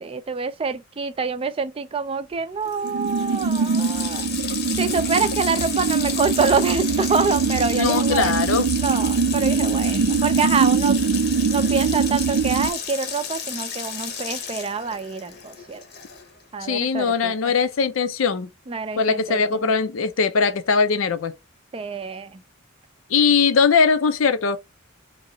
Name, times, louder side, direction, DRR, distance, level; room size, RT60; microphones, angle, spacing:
voice 1, 0.0-4.3 4.8-8.3 8.8-11.0 11.5-15.8 16.5-17.5 18.7-19.4 21.7-22.4, right 5 dB, 25° right, 0.4 m, -26 dB
Water tap faucet, 2.3-2.4 2.6-16.4, left 6 dB, 50° left, 0.8 m, -32 dB
sound 1, 2.8-12.7, right 5 dB, 85° right, 0.5 m, -22 dB
voice 2, 7.8-8.7 16.6-18.5 19.0-21.3 23.1-24.6, left 5 dB, 75° left, 0.5 m, -20 dB
3.0 x 2.8 x 3.8 m
head